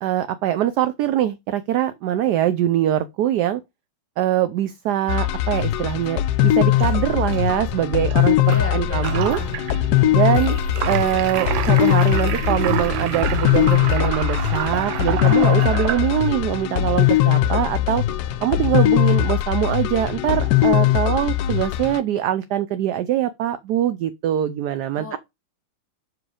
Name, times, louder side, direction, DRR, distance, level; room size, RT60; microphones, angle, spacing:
voice 1, 0.0-3.6 4.2-9.4 10.1-10.6 10.8-18.0 18.4-25.2, right 11 dB, 70° right, 1.0 m, -23 dB
sound 1, 5.1-22.0, left 13 dB, 70° left, 1.0 m, -20 dB
sound 2, 6.7-16.4, right 11 dB, 85° right, 1.5 m, -29 dB
voice 2, 8.4-9.8 17.0-17.3 24.9-25.2, left 1 dB, 10° left, 0.8 m, -36 dB
6.1 x 4.8 x 4.9 m
omnidirectional pair, 2.1 m